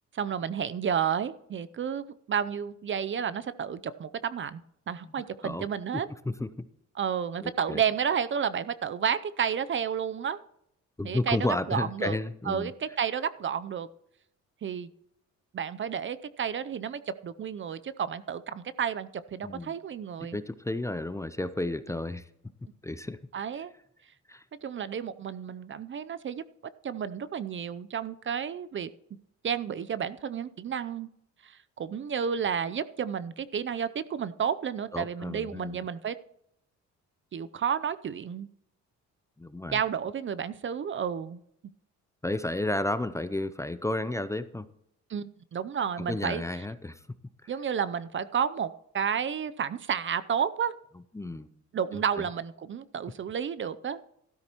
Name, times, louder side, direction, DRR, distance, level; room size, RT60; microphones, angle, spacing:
voice 1, 0.1-4.6 4.9-6.1 7.0-10.4 11.0-12.2 12.5-13.9 14.6-14.9 15.5-20.4 23.3-23.7 24.6-26.4 26.8-28.9 29.4-31.1 31.4-36.2 37.3-38.5 39.7-41.4 45.1-46.4 47.5-50.7 51.7-54.0, right 7 dB, 40° right, 15 dB, 0.6 m, -31 dB
voice 2, 7.4-7.8 11.0-12.7 19.4-19.7 20.3-22.3 22.8-23.2 24.3-24.4 34.9-35.8 39.4-39.8 42.2-44.6 46.0-47.0 47.4-47.5 51.1-51.5 51.9-52.3, left 2 dB, 10° left, 13 dB, 0.5 m, -32 dB
13.0 x 12.5 x 3.0 m, 0.77 s
cardioid pair, 90°, 30 cm